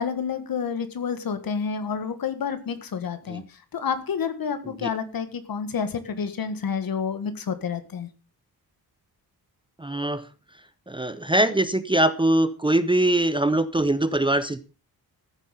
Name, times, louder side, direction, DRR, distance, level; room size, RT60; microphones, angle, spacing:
voice 1, 0.0-3.4 3.7-8.1, left 6 dB, 65° left, 11 dB, 1.8 m, -29 dB
voice 2, 9.8-10.3 10.9-14.6, right 1 dB, 15° right, 13 dB, 0.7 m, -22 dB
14.0 x 7.9 x 5.6 m, 0.33 s
wide cardioid pair, 175°, 38 cm